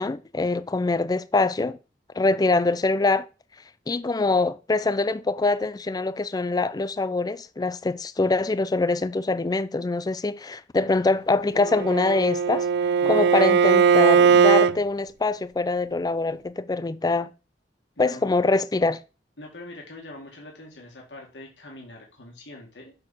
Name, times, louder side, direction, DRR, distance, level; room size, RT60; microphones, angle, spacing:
voice 1, 0.0-1.8 2.2-3.3 3.9-17.3 18.0-19.0, left 3 dB, 20° left, 0.4 m, -24 dB
Bowed string instrument, 11.6-14.8, right 6 dB, 65° right, 0.3 m, -19 dB
voice 2, 13.0-13.5 18.0-18.3 19.4-22.9, left 1 dB, 85° left, 2.1 m, -43 dB
6.4 x 6.1 x 4.2 m
head